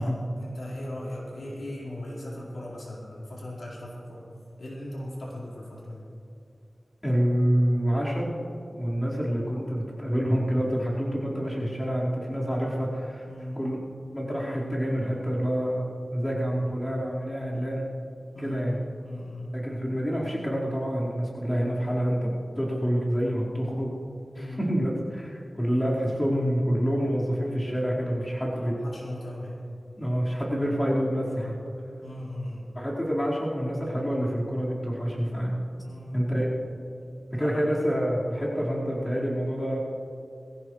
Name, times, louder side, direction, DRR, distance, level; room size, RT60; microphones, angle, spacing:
voice 1, 0.0-4.2 4.6-6.0 13.3-13.6 18.3-18.8 19.0-19.6 24.3-24.6 28.6-29.6 32.0-32.6 35.8-36.2 37.4-37.8, left 1 dB, 85° left, -6 dB, 4.5 m, -38 dB
voice 2, 7.0-8.3 8.7-13.3 13.5-13.8 14.1-15.9 16.1-17.9 18.4-18.8 19.5-23.9 24.3-28.8 30.0-31.5 32.7-35.5 36.1-36.5 37.3-39.8, equal, 15° left, -7 dB, 4.6 m, -27 dB
21.5 x 16.5 x 3.3 m, 2.6 s
wide cardioid pair, 65°, 0 cm